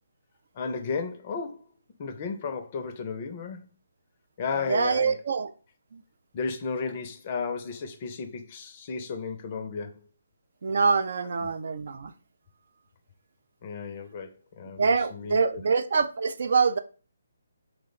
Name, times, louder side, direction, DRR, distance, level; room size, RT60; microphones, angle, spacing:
voice 1, 0.5-1.6 2.0-3.6 4.4-5.2 6.3-10.0 11.4-11.5 13.6-14.3 14.6-15.6, left 5 dB, 35° left, 0.5 m, -34 dB
voice 2, 4.7-5.5 5.9-6.0 10.6-12.1 14.8-16.8, right 5 dB, 55° right, 0.3 m, -25 dB
2.9 x 2.1 x 3.9 m
figure-of-eight pair, 145°, 0 cm